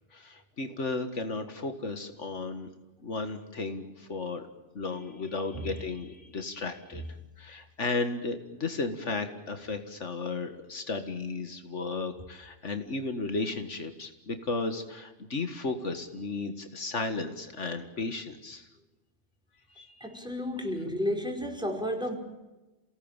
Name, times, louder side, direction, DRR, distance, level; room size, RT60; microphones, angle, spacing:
voice 1, 0.1-2.7 3.0-4.4 4.8-7.0 7.4-18.7 19.8-20.0, left 3 dB, 70° left, 7 dB, 2.1 m, -34 dB
voice 2, 20.0-22.2, equal, 5° right, 2 dB, 5.0 m, -32 dB
29.0 x 18.5 x 9.0 m, 1.1 s
omnidirectional pair, 1.3 m